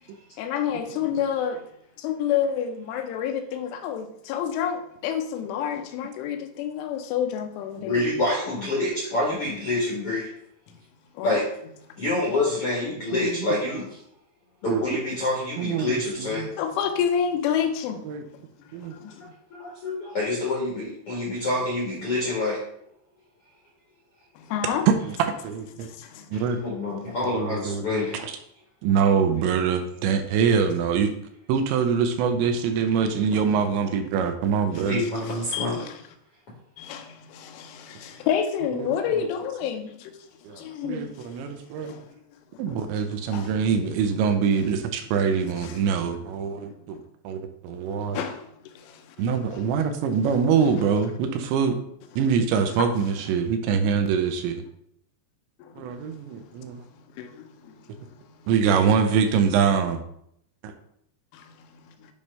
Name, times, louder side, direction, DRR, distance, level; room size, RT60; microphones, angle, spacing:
voice 1, 0.4-1.6 2.0-8.1 11.2-11.4 16.6-18.0 18.9-19.3 24.4-24.9 25.8-26.3 26.9-27.1 33.3-33.7 35.0-36.0 36.8-40.1 40.6-41.3 41.7-42.2 42.5-42.8 43.3-43.5 45.6-45.9 46.6-46.8 48.1-49.2 49.5-49.7 50.6-50.7 52.8-52.9 55.6-56.7 57.1-58.5 61.3-62.1, left 8 dB, 90° left, 3.2 m, -30 dB
voice 2, 7.7-10.3 11.2-11.5 12.0-13.9 14.6-16.5 19.2-22.6 26.3-28.2 34.9-35.8, left 2 dB, 65° left, 1.4 m, -27 dB
voice 3, 15.6-16.5 18.1-18.2 18.7-19.0 24.9-25.2 25.4-25.9 26.3-26.6 27.3-28.3 28.8-31.1 31.5-35.0 38.8-38.9 40.4-41.9 42.6-47.0 47.2-48.2 49.2-51.8 52.2-54.6 55.8-56.8 58.5-60.0 60.6-60.7, right 6 dB, 80° right, 2.8 m, -24 dB
8.7 x 3.2 x 5.4 m
omnidirectional pair, 5.5 m